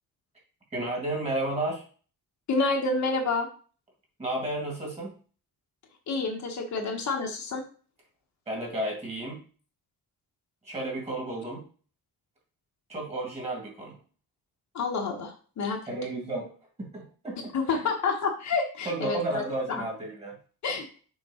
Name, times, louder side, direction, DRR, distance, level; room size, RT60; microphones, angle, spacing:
voice 1, 0.7-1.8 4.2-5.1 8.5-9.4 10.6-11.6 12.9-14.0 15.9-16.5 16.8-17.9 18.8-20.4, right 1 dB, 20° right, -2 dB, 2.5 m, -32 dB
voice 2, 2.5-3.5 6.1-7.6 14.7-15.8 17.5-19.4 19.7-19.8 20.6-20.9, left 4 dB, 55° left, 2 dB, 1.2 m, -28 dB
6.5 x 3.7 x 5.0 m, 0.39 s
wide cardioid pair, 175°, 35 cm